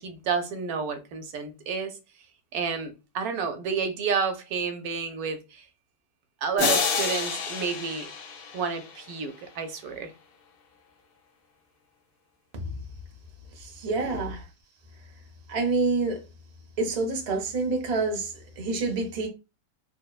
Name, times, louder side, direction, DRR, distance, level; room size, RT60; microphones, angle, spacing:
voice 1, 0.0-2.0 2.5-5.7 6.4-8.1 8.5-10.1, right 5 dB, 80° right, 1.0 m, -30 dB
sound 1, 6.6-9.4, left 5 dB, 80° left, 0.5 m, -29 dB
voice 2, 13.6-14.5 15.5-16.2 16.8-19.3, right 3 dB, 50° right, 0.4 m, -28 dB
3.1 x 2.0 x 2.2 m
omnidirectional pair, 1.6 m